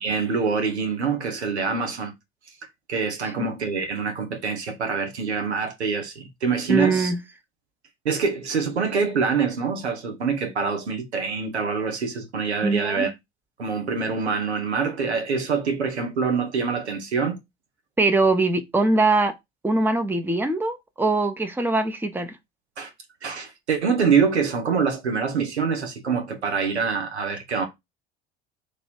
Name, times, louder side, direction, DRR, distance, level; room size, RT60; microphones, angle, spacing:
voice 1, 0.0-2.1 2.9-7.1 8.0-13.1 13.6-17.4 22.8-22.9 23.2-27.7, right 5 dB, 85° right, 1.1 m, -25 dB
voice 2, 6.7-7.2 12.6-13.1 18.0-19.3 19.6-22.4, right 2 dB, 5° right, 0.8 m, -22 dB
3.2 x 2.7 x 4.4 m
figure-of-eight pair, 65°, 33 cm